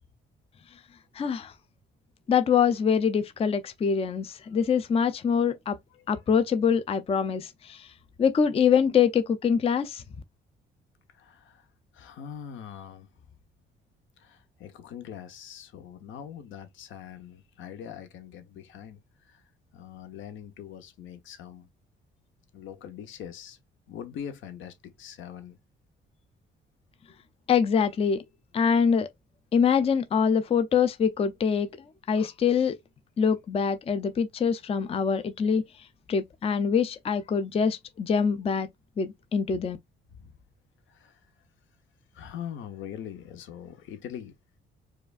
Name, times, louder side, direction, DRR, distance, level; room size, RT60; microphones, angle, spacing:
voice 1, 1.1-1.5 2.3-5.8 6.1-7.9 8.2-10.0 27.5-28.2 28.5-29.1 29.5-31.7 32.1-32.7 33.2-35.6 36.1-38.7 39.0-39.8, left 6 dB, 30° left, 0.4 m, -24 dB
voice 2, 5.9-6.2 11.1-11.7 11.9-13.1 14.2-19.4 19.7-21.7 22.5-23.6 23.9-25.6 40.1-40.3 40.9-41.2 42.1-44.3, left 9 dB, 80° left, 0.8 m, -42 dB
4.8 x 2.4 x 2.4 m
cardioid pair, 90°, 20 cm